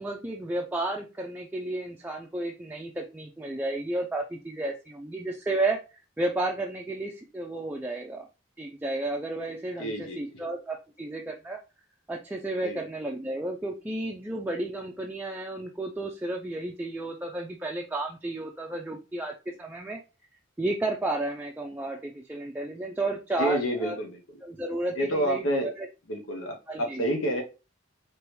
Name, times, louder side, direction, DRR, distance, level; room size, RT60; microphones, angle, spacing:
voice 1, 0.0-8.3 8.6-11.6 12.1-20.0 20.6-24.0 24.4-25.9 26.7-27.0, right 2 dB, 10° right, 0.4 m, -32 dB
voice 2, 9.8-10.2 12.6-12.8 23.4-24.2 25.0-25.7 26.1-27.4, equal, 85° left, 0.8 m, -28 dB
4.7 x 3.0 x 3.1 m
head